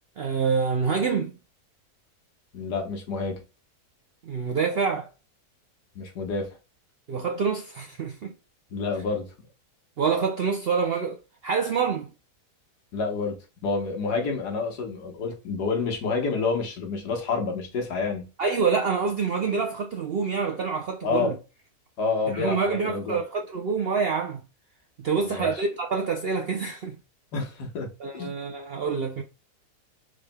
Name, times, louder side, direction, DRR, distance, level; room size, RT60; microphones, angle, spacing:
voice 1, 0.2-1.4 4.2-5.1 7.1-8.3 10.0-12.1 18.4-21.4 22.3-24.4 25.0-27.0 28.0-29.2, right 5 dB, 70° right, 0.5 m, -26 dB
voice 2, 2.5-3.4 6.0-6.6 8.7-9.3 12.9-18.3 21.0-21.3 22.0-23.2 25.2-25.5 27.3-28.3, left 4 dB, 85° left, 1.8 m, -29 dB
4.9 x 3.3 x 2.2 m
omnidirectional pair, 1.7 m